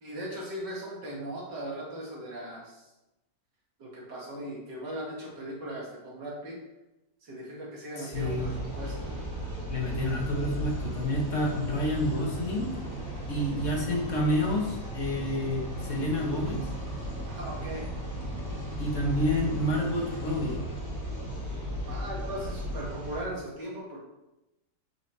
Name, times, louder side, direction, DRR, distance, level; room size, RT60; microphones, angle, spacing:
voice 1, 0.0-2.8 3.8-6.6 7.2-9.1 17.3-17.9 21.9-24.0, right 1 dB, 90° right, -4 dB, 2.7 m, -38 dB
voice 2, 8.0-8.5 9.7-12.7 13.3-16.6 18.8-20.6, left 1 dB, 50° left, -1 dB, 1.8 m, -29 dB
sound 1, 8.1-23.2, equal, 30° right, 2.2 m, -36 dB
7.8 x 5.1 x 4.2 m, 0.95 s
omnidirectional pair, 1.8 m